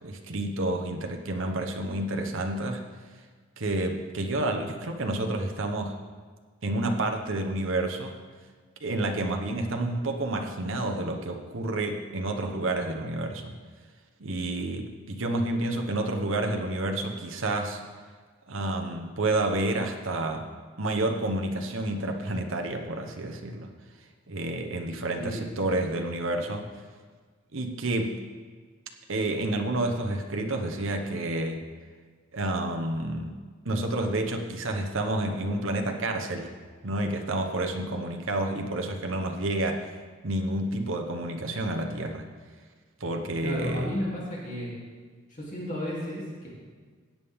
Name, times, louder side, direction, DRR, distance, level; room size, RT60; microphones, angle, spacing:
voice 1, 0.0-2.8 3.6-5.9 6.6-8.1 8.8-13.5 14.2-17.8 18.5-20.5 20.8-23.7 24.3-26.7 27.5-28.2 29.1-31.6 32.3-33.3 33.6-36.5 36.8-39.8 40.2-42.3 43.0-43.9, right 2 dB, 65° right, 3 dB, 1.1 m, -29 dB
voice 2, 43.4-44.7 45.3-46.5, equal, 35° left, -6 dB, 2.9 m, -33 dB
16.5 x 8.8 x 3.6 m, 1.5 s
head